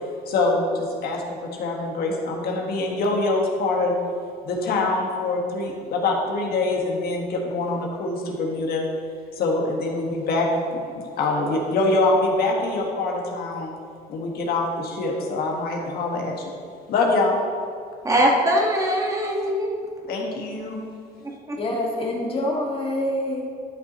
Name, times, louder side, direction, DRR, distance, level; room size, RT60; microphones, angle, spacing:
voice 1, 0.3-4.0 4.4-8.8 9.3-13.7 14.1-16.5 16.9-17.4 18.1-18.3 20.1-20.8, left 2 dB, 65° left, -1 dB, 1.7 m, -24 dB
voice 2, 18.0-19.9 21.5-21.8, equal, 20° right, -1 dB, 1.6 m, -22 dB
voice 3, 21.6-23.6, left 1 dB, 35° left, -2 dB, 1.9 m, -26 dB
12.5 x 6.0 x 3.1 m, 2.3 s
cardioid pair, 110°, 17 cm